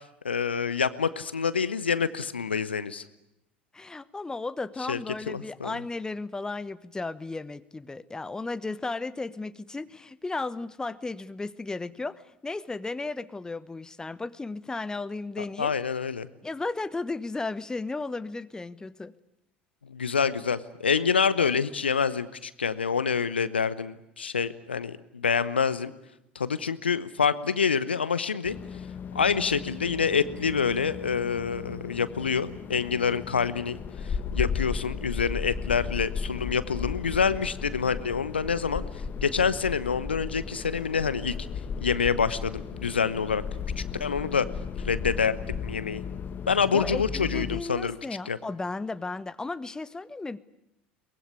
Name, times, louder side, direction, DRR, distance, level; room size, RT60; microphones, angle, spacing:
voice 1, 0.2-3.0 4.9-5.0 5.3-5.7 15.4-16.3 19.9-25.9 26.3-28.6 29.1-33.8 34.0-38.8 39.2-41.3 41.8-43.4 43.8-44.5 44.8-46.0 46.5-48.0 48.3-48.4, left 6 dB, 80° left, 15 dB, 1.0 m, -27 dB
voice 2, 3.7-15.7 16.4-19.1 46.7-50.4, left 3 dB, 10° left, 16 dB, 1.0 m, -34 dB
sound 1, 28.4-47.6, left 6 dB, 35° left, 1.4 m, -35 dB
23.0 x 20.5 x 9.8 m, 0.85 s
figure-of-eight pair, 70°, 6 cm